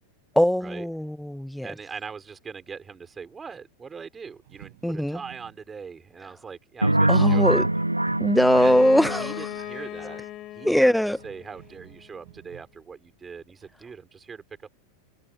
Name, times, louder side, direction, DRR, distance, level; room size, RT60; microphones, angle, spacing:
voice 1, 0.3-1.7 4.8-5.2 7.1-7.6 8.2-9.3 10.6-11.2, equal, ahead, 1.5 m, -21 dB
voice 2, 1.6-7.5 7.7-7.8 8.6-8.8 9.2-10.2 10.5-14.4, right 5 dB, 15° right, 5.6 m, -41 dB
sound 1, 4.2-5.7 7.1-7.7 8.1-8.6 10.6-10.7 11.1-12.8 13.6-13.9, right 18 dB, 50° right, 7.6 m, -51 dB
sound 2, 6.8-9.7, right 1 dB, 85° right, 0.7 m, -23 dB
Bowed string instrument, 8.5-12.2, left 14 dB, 35° left, 6.3 m, -38 dB
figure-of-eight pair, 90°, 0 cm